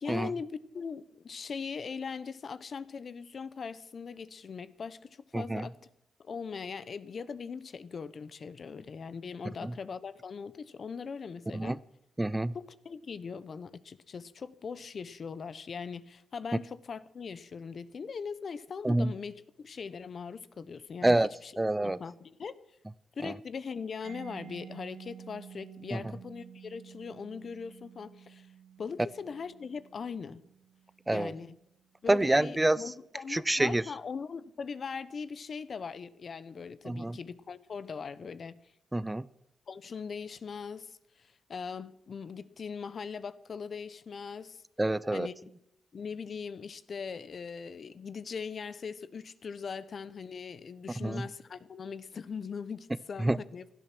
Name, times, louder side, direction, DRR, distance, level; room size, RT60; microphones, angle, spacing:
voice 1, 0.0-5.8 6.2-11.8 12.5-21.2 21.8-22.6 23.1-28.5 28.8-30.4 31.1-31.6 32.0-38.6 39.7-44.6 45.1-45.3 45.9-53.7, left 5 dB, 55° left, 0.9 m, -40 dB
voice 2, 5.3-5.7 9.6-9.7 11.5-11.8 12.2-12.6 18.8-19.1 21.0-21.3 21.6-22.0 23.2-23.4 25.9-26.1 31.1-31.3 32.1-32.9 33.3-33.8 36.8-37.2 38.9-39.3 44.8-45.3 51.0-51.3 53.2-53.4, right 1 dB, 15° right, 0.5 m, -27 dB
Mallet percussion, 24.0-31.6, right 9 dB, 75° right, 2.0 m, -51 dB
17.0 x 12.0 x 6.1 m
cardioid pair, 85°, 0 cm